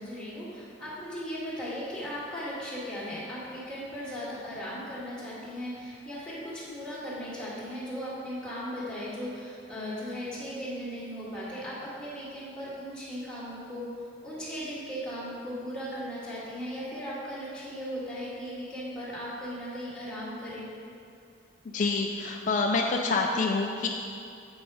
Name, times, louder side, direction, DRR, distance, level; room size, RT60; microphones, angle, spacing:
voice 1, 0.0-13.9 14.2-20.7, equal, 5° left, -9 dB, 2.0 m, -37 dB
voice 2, 21.7-23.9, left 3 dB, 40° left, 1 dB, 0.4 m, -27 dB
7.9 x 6.2 x 4.9 m, 2.5 s
head